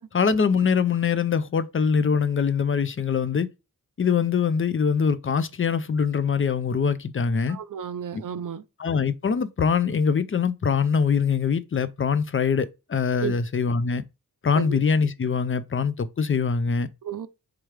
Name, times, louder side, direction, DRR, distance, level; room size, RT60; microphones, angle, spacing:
voice 1, 0.1-3.5 4.0-7.6 8.8-14.0 14.4-16.9, left 6 dB, 35° left, 0.4 m, -23 dB
voice 2, 7.5-8.6 13.2-13.4 14.5-14.8 17.0-17.3, right 8 dB, 60° right, 0.5 m, -32 dB
3.6 x 3.0 x 3.1 m
wide cardioid pair, 55°, 37 cm